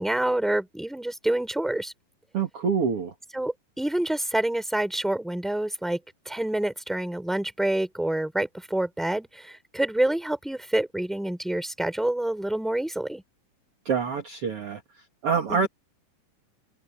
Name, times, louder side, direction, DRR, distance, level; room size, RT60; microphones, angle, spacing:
voice 1, 0.0-1.9 3.3-6.0 6.2-13.2 15.5-15.7, right 1 dB, ahead, 4.3 m, -27 dB
voice 2, 2.3-3.1 13.9-14.8 15.2-15.7, right 5 dB, 50° right, 2.5 m, -26 dB
omnidirectional pair, 4.0 m